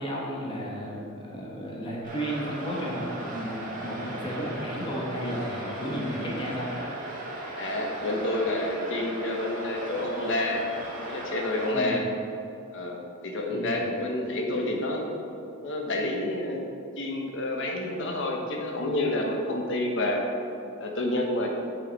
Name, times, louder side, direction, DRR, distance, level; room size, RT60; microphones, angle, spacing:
voice 1, 0.0-6.7 11.7-12.0 13.5-13.8, equal, 25° left, -4 dB, 1.3 m, -33 dB
sound 1, 2.0-11.7, right 1 dB, 40° right, 1.6 m, -37 dB
voice 2, 7.6-10.6 11.0-12.0 12.7-15.1 15.6-16.6 17.0-20.2 20.8-21.5, left 1 dB, 60° left, 1 dB, 1.1 m, -29 dB
8.7 x 6.5 x 4.1 m, 2.7 s
head